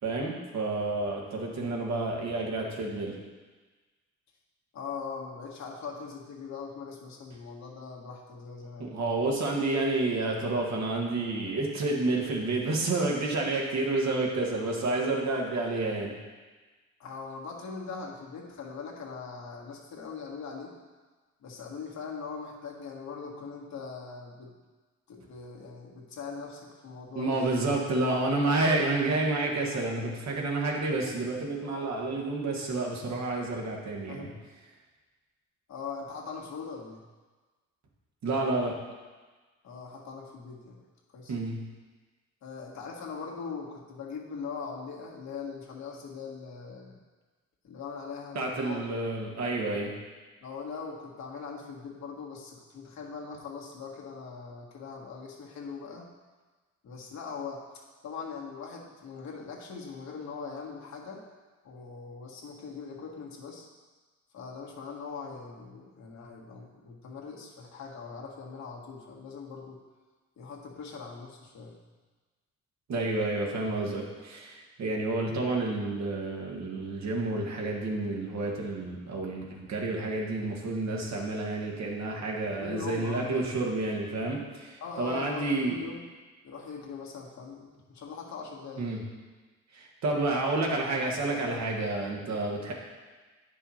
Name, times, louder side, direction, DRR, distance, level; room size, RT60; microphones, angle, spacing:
voice 1, 0.0-3.2 8.8-16.1 27.1-34.3 38.2-38.7 41.3-41.6 48.3-49.9 72.9-85.8 88.8-89.0 89.7-92.7, right 2 dB, 65° right, -1 dB, 1.7 m, -30 dB
voice 2, 4.7-8.9 17.0-20.8 21.4-24.5 25.1-27.6 34.1-34.3 35.7-37.0 39.6-40.8 41.1-41.3 42.4-47.0 47.6-48.8 50.4-56.1 56.8-57.6 58.0-61.2 61.6-63.7 64.3-69.8 70.4-71.8 82.6-83.6 84.8-86.0 86.4-88.9, left 5 dB, 65° left, -2 dB, 1.6 m, -41 dB
9.1 x 5.6 x 4.3 m, 1.3 s
cardioid pair, 90°, 30 cm